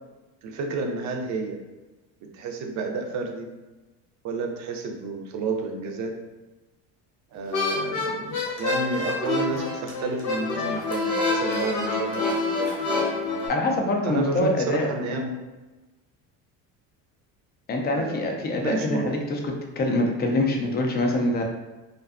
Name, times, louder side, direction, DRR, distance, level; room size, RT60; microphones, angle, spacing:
voice 1, 0.4-1.6 2.2-3.5 4.2-6.1 7.3-12.9 14.0-15.3 17.9-19.2, right 3 dB, 50° right, 3 dB, 0.5 m, -31 dB
sound 1, 7.5-13.5, left 3 dB, 90° left, 0.9 m, -27 dB
voice 2, 13.5-14.9 17.7-21.4, left 2 dB, 25° left, 2 dB, 0.3 m, -25 dB
2.5 x 2.2 x 2.3 m, 1.2 s
cardioid pair, 115°, 38 cm